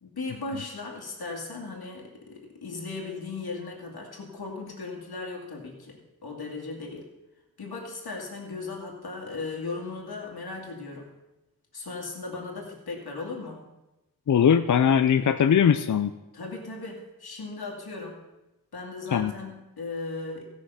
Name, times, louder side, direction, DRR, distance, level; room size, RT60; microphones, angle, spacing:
voice 1, 0.0-7.1 7.6-11.1 11.7-13.6 16.3-18.2 18.7-20.5, left 3 dB, 85° left, -1 dB, 2.3 m, -37 dB
voice 2, 14.3-16.1 19.1-19.3, left 8 dB, 55° left, 9 dB, 0.5 m, -20 dB
16.5 x 6.2 x 5.6 m, 1.0 s
wide cardioid pair, 115°, 37 cm